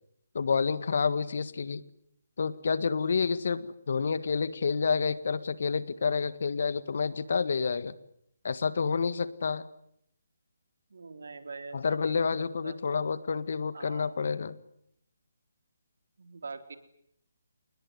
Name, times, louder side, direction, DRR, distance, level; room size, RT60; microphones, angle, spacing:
voice 1, 0.3-1.8 2.4-8.0 8.4-9.7 11.7-14.6, left 5 dB, 60° left, 15 dB, 1.7 m, -29 dB
voice 2, 10.9-12.3 12.6-12.8 13.7-14.2 16.2-16.8, right 4 dB, 75° right, 8 dB, 3.7 m, -43 dB
28.0 x 20.5 x 9.7 m, 0.74 s
hypercardioid pair, 165°, 0 cm